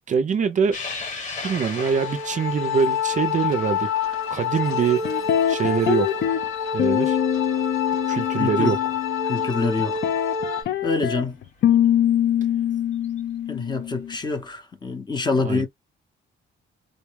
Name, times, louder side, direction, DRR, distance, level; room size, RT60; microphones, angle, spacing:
voice 1, 0.1-0.8 1.4-3.9 4.3-5.0 5.5-6.2 6.7-7.2 8.0-8.8 15.4-15.7, right 6 dB, 35° right, 0.5 m, -23 dB
sound 1, 0.7-7.4 7.8-7.9 9.2-9.3 11.4-11.5 12.9-13.2, left 4 dB, 35° left, 1.2 m, -38 dB
sound 2, 1.7-10.6, left 7 dB, 85° left, 1.9 m, -27 dB
sound 3, 5.1-6.5 6.8-9.5 9.8-14.2, left 11 dB, 55° left, 0.5 m, -24 dB
voice 2, 8.4-8.7 9.2-10.0 10.5-11.4 13.5-15.7, left 3 dB, 20° left, 0.7 m, -26 dB
4.0 x 2.2 x 3.1 m
cardioid pair, 170°, 21 cm